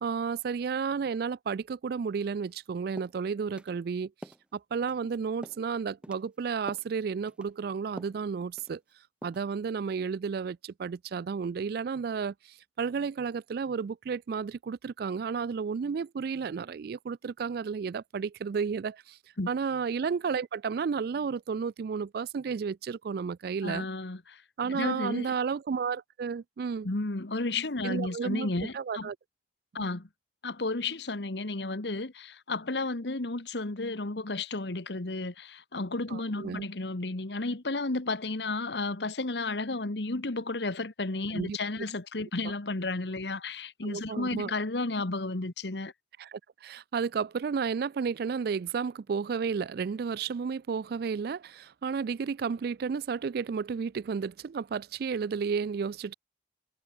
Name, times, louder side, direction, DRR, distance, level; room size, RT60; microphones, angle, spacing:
voice 1, 0.0-4.1 4.5-8.8 9.2-19.2 19.5-23.9 24.6-26.9 27.8-28.5 28.7-29.2 36.1-36.7 41.3-41.6 42.4-42.5 43.8-44.5 46.2-56.1, right 6 dB, 60° right, 0.3 m, -32 dB
sound 1, 2.5-2.7 3.0-3.2 3.6-3.7 4.2-4.5 4.8-5.2 5.4-5.7 6.0-6.3 6.7-6.9 7.3-7.5 8.0-8.2 8.6-8.9 9.2-9.5, equal, 5° right, 0.7 m, -46 dB
voice 2, 23.6-24.4 24.7-25.4 26.8-29.1 29.7-30.1 30.4-45.9, left 2 dB, 70° left, 1.4 m, -33 dB
head